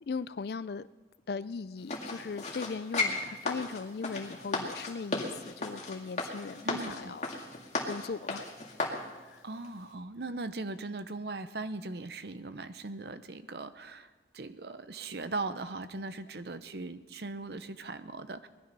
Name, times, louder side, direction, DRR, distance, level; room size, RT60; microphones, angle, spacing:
voice 1, 0.1-0.9 1.3-7.3 7.8-8.5 9.3-9.4, left 5 dB, 60° left, 17 dB, 0.4 m, -38 dB
sound 1, 1.9-9.0 9.6-9.7, left 2 dB, 35° left, 2.2 m, -35 dB
voice 2, 6.6-7.1 9.4-18.5, right 3 dB, 60° right, 11 dB, 0.8 m, -39 dB
20.0 x 12.0 x 5.4 m, 1.2 s
head